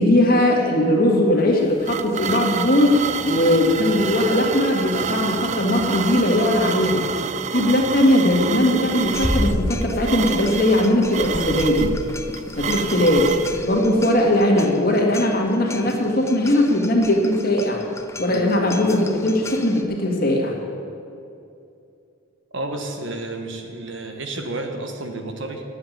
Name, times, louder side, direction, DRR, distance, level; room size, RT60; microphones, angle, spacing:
voice 1, 0.0-7.0 7.5-11.9 12.6-13.3 13.6-17.8 18.2-20.6, left 1 dB, 45° left, 0 dB, 2.0 m, -19 dB
sound 1, 1.4-13.5, right 7 dB, 35° right, 0.3 m, -28 dB
sound 2, 8.9-19.8, left 1 dB, 15° left, 0.6 m, -32 dB
voice 2, 22.5-25.6, right 2 dB, 60° right, 4 dB, 1.3 m, -31 dB
10.0 x 7.9 x 9.3 m, 2.6 s
head